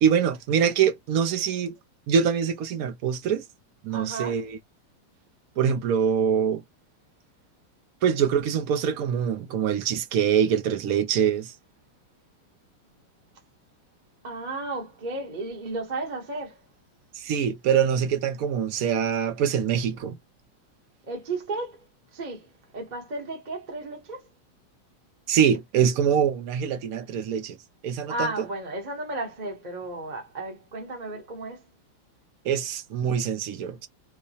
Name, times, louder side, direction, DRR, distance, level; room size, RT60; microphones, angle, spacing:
voice 1, 0.0-1.7 2.1-3.4 3.8-4.6 5.6-6.6 8.0-11.5 17.1-20.2 25.3-27.6 27.8-28.3 32.4-33.9, right 8 dB, 65° right, 0.9 m, -24 dB
voice 2, 3.9-4.4 14.2-16.6 21.1-24.3 28.1-31.7, right 2 dB, 30° right, 0.8 m, -34 dB
4.6 x 2.1 x 2.7 m
omnidirectional pair, 2.0 m